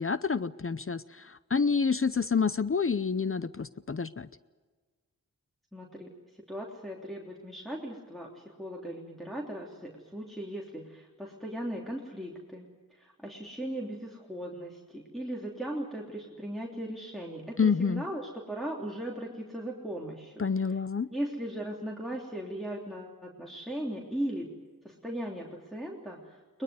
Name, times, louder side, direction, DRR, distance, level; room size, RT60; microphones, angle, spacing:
voice 1, 0.0-4.3 17.6-18.0 20.4-21.1, left 5 dB, 40° left, 15 dB, 0.7 m, -28 dB
voice 2, 5.7-6.1 6.5-20.4 21.1-24.5 24.8-26.6, right 1 dB, ahead, -3 dB, 3.2 m, -38 dB
22.0 x 21.0 x 9.5 m, 1.4 s
wide cardioid pair, 55°, 34 cm